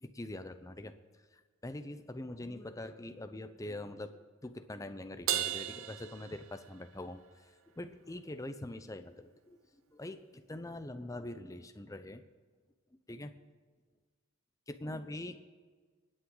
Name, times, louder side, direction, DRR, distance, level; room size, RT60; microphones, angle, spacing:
voice 1, 0.0-0.9 1.6-7.2 7.8-9.6 9.9-12.2 13.1-13.3 14.7-15.5, left 1 dB, 15° left, 9 dB, 0.6 m, -43 dB
Crash cymbal, 5.3-7.0, right 11 dB, 85° right, 0.8 m, -35 dB
26.0 x 8.7 x 3.9 m, 1.5 s
head